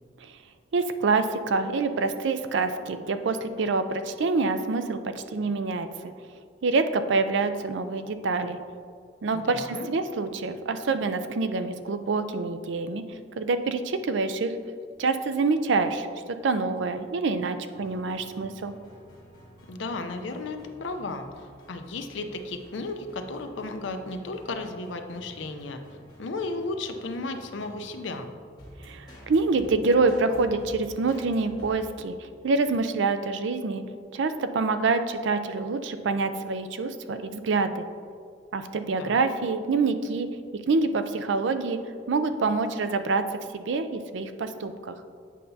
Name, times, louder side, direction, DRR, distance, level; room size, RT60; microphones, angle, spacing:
voice 1, 0.7-6.1 6.6-8.6 9.2-13.0 13.4-14.5 15.0-16.1 16.4-18.7 28.8-33.8 34.1-37.8 38.5-40.3 40.5-41.8 42.1-43.3 43.5-44.9, right 4 dB, 75° right, 10 dB, 0.4 m, -26 dB
voice 2, 9.3-9.9 19.7-21.3 21.7-25.8 26.2-28.3 39.0-39.2, left 3 dB, 80° left, 7 dB, 0.6 m, -34 dB
sound 1, 17.7-31.7, equal, 20° left, 1.6 m, -49 dB
8.5 x 5.6 x 2.7 m, 2.1 s
head